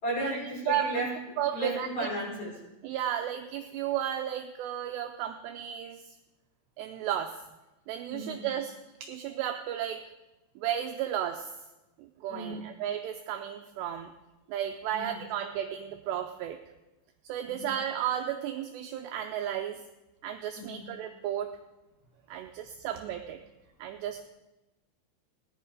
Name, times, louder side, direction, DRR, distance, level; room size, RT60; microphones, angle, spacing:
voice 1, 0.0-2.6 8.1-8.5 12.3-12.7 14.9-15.2 17.5-17.8 20.5-21.0, right 1 dB, 35° left, -4 dB, 6.2 m, -35 dB
voice 2, 1.4-2.1 2.8-6.1 6.8-7.4 7.9-10.0 10.6-11.5 12.0-14.1 14.5-16.6 17.2-19.8 20.2-21.5 22.3-23.4 23.8-24.2, right 10 dB, 85° right, 5 dB, 2.4 m, -33 dB
18.0 x 11.0 x 4.9 m, 1.0 s
omnidirectional pair, 5.6 m